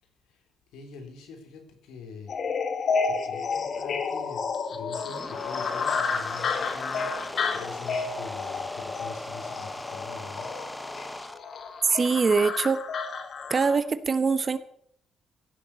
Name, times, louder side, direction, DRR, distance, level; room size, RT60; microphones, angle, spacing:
voice 1, 0.7-2.3 3.1-7.1 7.5-10.5, left 5 dB, 90° left, 4 dB, 3.3 m, -44 dB
sound 1, 2.3-13.8, left 5 dB, 55° left, 1.9 m, -31 dB
sound 2, 4.9-11.4, left 1 dB, 10° left, 0.9 m, -39 dB
voice 2, 11.9-12.8 13.5-14.6, right 5 dB, 35° right, 12 dB, 1.0 m, -23 dB
16.0 x 7.2 x 8.2 m, 0.68 s
cardioid pair, 90°, 0 cm